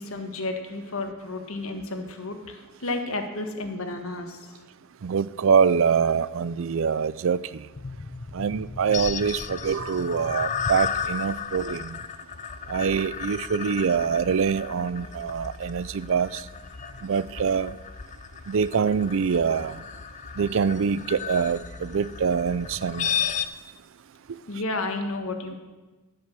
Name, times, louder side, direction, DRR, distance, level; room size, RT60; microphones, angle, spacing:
voice 1, 0.0-4.4 24.5-25.5, left 2 dB, 80° left, 1.5 m, -32 dB
voice 2, 5.0-7.4 8.3-11.9 12.7-16.3 17.0-17.7 18.5-19.7 20.4-23.1, right 6 dB, 65° right, 0.4 m, -24 dB
sound 1, 7.7-23.5, left 7 dB, 35° left, 0.5 m, -34 dB
12.5 x 7.9 x 6.7 m
head